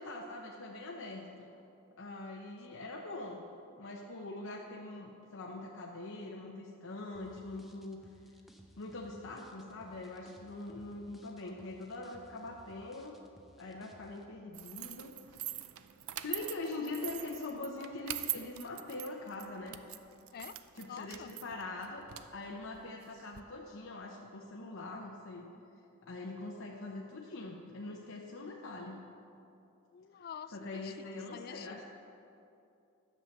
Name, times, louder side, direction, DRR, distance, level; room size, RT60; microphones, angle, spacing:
voice 1, 0.0-1.5 2.0-3.4 3.8-8.1 8.8-13.2 13.6-15.5 16.2-19.8 20.7-22.1 22.3-25.5 26.0-29.0 30.5-31.8, left 2 dB, 60° left, -1 dB, 0.9 m, -43 dB
sound 1, 7.1-14.2, equal, ahead, 0.8 m, -60 dB
sound 2, 14.5-23.4, right 14 dB, 75° right, 0.5 m, -43 dB
voice 2, 20.3-21.3 29.9-31.0 31.3-31.8, left 8 dB, 45° left, 14 dB, 0.3 m, -47 dB
11.0 x 7.5 x 6.6 m, 2.7 s
head